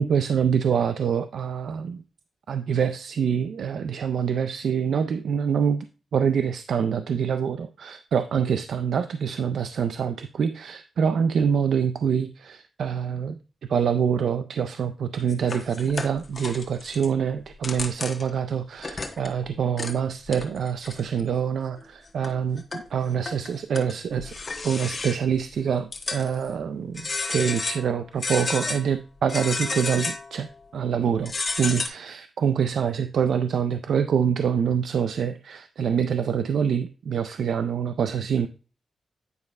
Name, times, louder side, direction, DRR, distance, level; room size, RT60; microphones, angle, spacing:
voice 1, 0.0-2.0 2.5-5.8 6.1-13.4 13.7-24.3 24.6-38.5, right 7 dB, 80° right, 9 dB, 0.4 m, -25 dB
sound 1, 15.3-17.1 17.5-18.4 18.8-19.4 19.8-19.9 20.3-21.2 21.8-21.9 22.2-22.9 23.2-25.4 25.9-26.5 27.0-27.9 28.2-28.8 29.3-30.3 31.2-31.9, left 3 dB, 40° left, 1.4 m, -31 dB
9.5 x 3.2 x 5.3 m, 0.36 s
cardioid pair, 75°, 0 cm